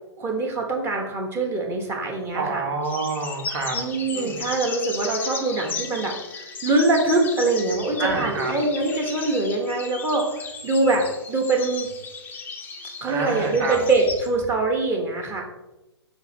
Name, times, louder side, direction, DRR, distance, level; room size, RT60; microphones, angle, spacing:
voice 1, 0.2-2.6 3.7-10.3 10.6-11.9 13.0-15.4, right 2 dB, 15° right, 1 dB, 1.2 m, -23 dB
voice 2, 2.3-3.8 4.1-4.5 8.0-8.5 13.1-13.8, right 4 dB, 55° right, 2 dB, 1.6 m, -28 dB
sound 1, 2.8-14.3, left 4 dB, 10° left, 0.6 m, -35 dB
5.8 x 4.0 x 4.3 m, 1.0 s
hypercardioid pair, 125°, 15 cm